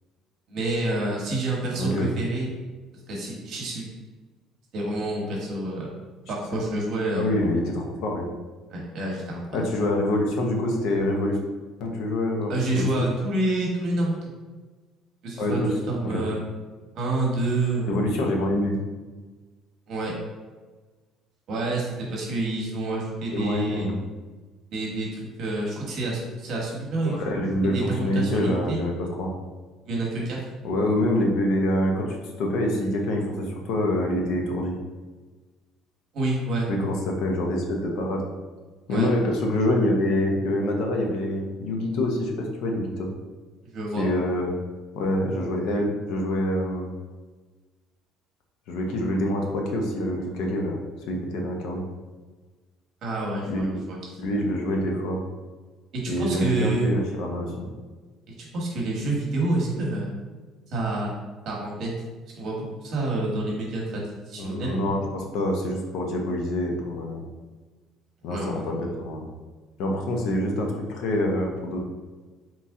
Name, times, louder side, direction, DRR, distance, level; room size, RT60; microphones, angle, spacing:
voice 1, 0.5-2.5 3.1-3.9 4.7-5.9 6.3-7.3 8.7-9.7 12.5-14.2 15.2-16.4 16.9-18.0 19.9-20.1 21.5-23.9 24.7-27.3 27.7-28.8 29.8-30.4 36.1-36.7 38.9-39.1 43.6-44.0 53.0-54.0 55.9-56.9 58.4-60.1 60.7-61.1 61.4-61.9 62.3-64.8 68.2-68.6, right 2 dB, 40° right, -3 dB, 1.2 m, -28 dB
voice 2, 1.8-2.2 7.2-8.3 9.5-11.4 11.8-13.1 15.4-15.7 16.0-16.2 17.8-18.8 23.3-24.0 27.0-29.3 30.6-34.8 36.7-38.2 38.9-43.1 44.0-44.5 45.0-46.9 48.7-50.8 51.1-51.8 53.5-53.8 54.2-55.2 56.1-57.7 64.4-67.2 68.2-69.3 69.8-71.8, left 1 dB, 55° left, 1 dB, 0.7 m, -26 dB
4.1 x 3.0 x 3.6 m, 1.3 s
cardioid pair, 180°, 0 cm